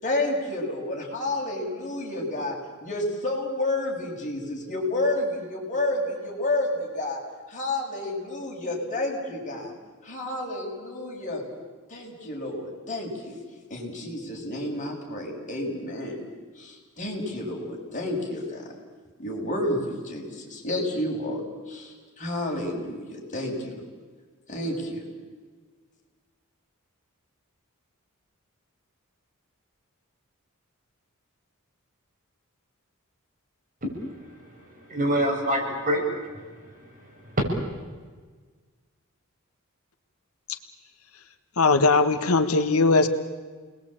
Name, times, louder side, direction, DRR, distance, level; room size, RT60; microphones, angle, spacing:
voice 1, 0.0-2.5 2.8-7.2 7.5-9.7 10.0-11.4 11.9-13.4 13.7-16.2 16.5-18.7 19.2-21.4 21.7-23.7 24.5-25.0, left 1 dB, 35° left, 6.8 m, -30 dB
voice 2, 33.8-36.1 36.3-36.7 37.2-37.4, equal, 40° right, 7.1 m, -27 dB
voice 3, 41.6-43.1, left 3 dB, 80° left, 1.6 m, -19 dB
30.0 x 21.0 x 8.9 m
head